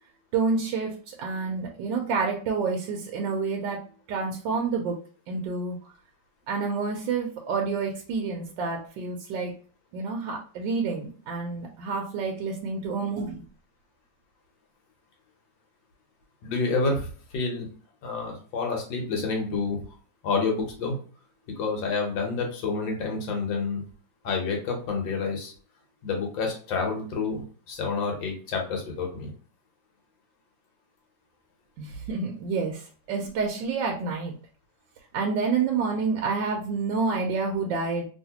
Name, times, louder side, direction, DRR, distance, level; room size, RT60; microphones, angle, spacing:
voice 1, 0.3-3.8 4.1-5.0 5.3-5.8 6.5-9.5 9.9-13.4 31.8-34.3 35.1-38.1, right 4 dB, 80° right, 0 dB, 1.3 m, -28 dB
voice 2, 16.4-17.7 18.0-19.8 20.2-21.0 21.6-23.8 24.2-25.5 26.0-29.3, left 4 dB, 85° left, 1 dB, 1.6 m, -28 dB
3.1 x 2.9 x 2.8 m, 0.41 s
omnidirectional pair, 2.0 m